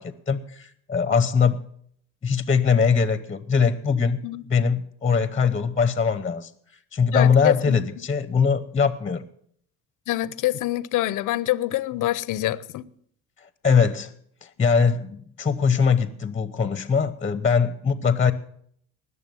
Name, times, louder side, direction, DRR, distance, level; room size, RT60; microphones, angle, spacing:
voice 1, 0.0-1.6 2.2-4.2 4.5-6.5 6.9-9.2 13.4-14.1 14.4-18.3, left 6 dB, 20° left, 0.9 m, -22 dB
voice 2, 7.1-7.8 10.1-12.9, left 15 dB, 55° left, 0.7 m, -26 dB
19.5 x 6.8 x 7.0 m
supercardioid pair, 85°, 36 cm